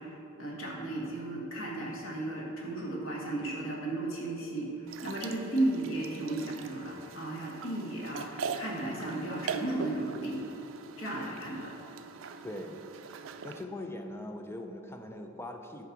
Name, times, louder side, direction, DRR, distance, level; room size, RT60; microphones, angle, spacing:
voice 1, 0.0-10.4 11.0-11.8, right 2 dB, 80° left, -3 dB, 1.8 m, -34 dB
sound 1, 4.9-13.6, right 5 dB, 80° right, 0.4 m, -42 dB
voice 2, 12.4-12.8 13.4-15.9, left 1 dB, 10° left, 4 dB, 0.5 m, -41 dB
9.9 x 4.7 x 6.0 m, 2.9 s
head